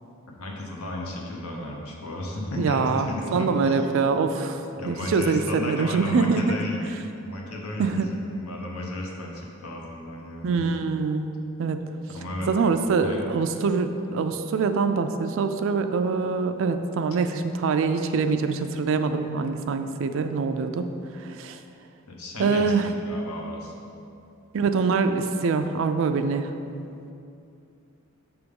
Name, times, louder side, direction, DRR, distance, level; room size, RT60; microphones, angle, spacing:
voice 1, 0.3-3.9 4.8-6.8 7.2-10.6 12.1-12.5 13.0-13.2 22.1-23.8, left 1 dB, 85° left, -1 dB, 0.9 m, -34 dB
voice 2, 2.6-6.6 7.8-8.1 10.4-11.3 11.6-11.8 12.5-20.9 21.2-21.6 22.4-22.9 24.5-26.5, right 4 dB, 65° right, 8 dB, 0.3 m, -24 dB
6.0 x 3.5 x 5.2 m, 2.6 s
head